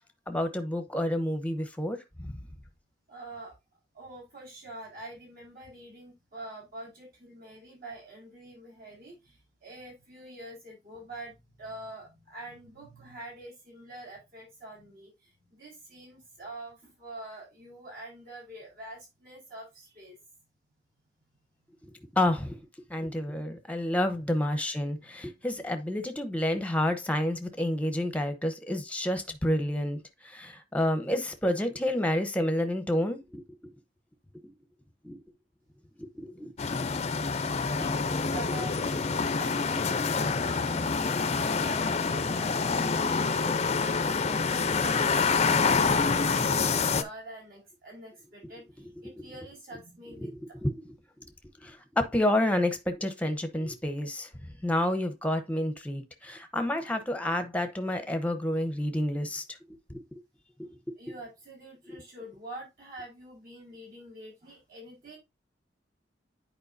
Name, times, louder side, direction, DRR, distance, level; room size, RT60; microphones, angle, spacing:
voice 1, 0.3-2.4 22.1-22.6 22.9-33.7 34.4-34.5 35.0-35.2 36.0-36.5 50.1-50.9 51.6-54.3 54.6-59.4 59.9-60.0 60.6-60.8, left 1 dB, 10° left, 0.9 m, -29 dB
voice 2, 3.1-3.5 3.9-20.2 25.0-25.6 37.7-50.6 61.0-65.2, right 1 dB, 55° right, 5.0 m, -46 dB
sound 1, 36.6-47.0, left 4 dB, 35° left, 0.5 m, -27 dB
9.6 x 4.7 x 2.6 m
head